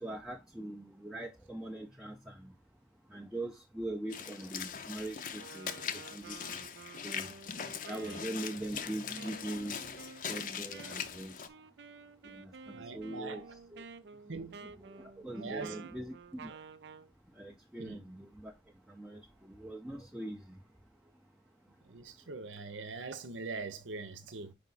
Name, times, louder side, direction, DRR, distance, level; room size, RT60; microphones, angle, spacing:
voice 1, 0.0-2.5 3.1-5.7 6.1-6.4 7.0-7.3 7.9-9.8 10.3-11.4 12.3-13.4 13.7-13.8 14.3-16.2 16.4-16.5 17.4-18.5 18.9-20.6, right 1 dB, 5° right, 0.5 m, -42 dB
Walk footsteps / Splash splatter, 4.1-11.5, left 7 dB, 45° left, 0.6 m, -41 dB
Wind instrument woodwind instrument, 5.3-17.1, right 4 dB, 65° right, 0.4 m, -51 dB
voice 2, 12.7-13.5 14.3-14.6 15.3-15.9 17.8-18.0 21.8-24.5, right 4 dB, 90° right, 0.9 m, -43 dB
5.1 x 4.9 x 4.0 m
head